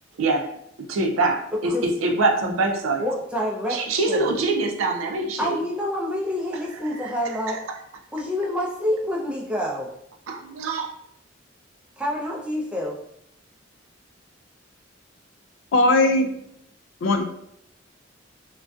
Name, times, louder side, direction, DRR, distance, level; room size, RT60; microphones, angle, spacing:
voice 1, 0.9-1.7 2.0-3.0 3.7-5.6 10.3-10.9, right 3 dB, 90° right, 3 dB, 0.4 m, -24 dB
voice 2, 3.0-4.3 5.4-7.6 8.1-9.9 12.0-13.0, left 1 dB, 5° right, -4 dB, 0.4 m, -27 dB
voice 3, 15.7-16.3 17.0-17.2, left 2 dB, 70° left, 5 dB, 0.3 m, -18 dB
2.5 x 2.2 x 2.2 m, 0.73 s
head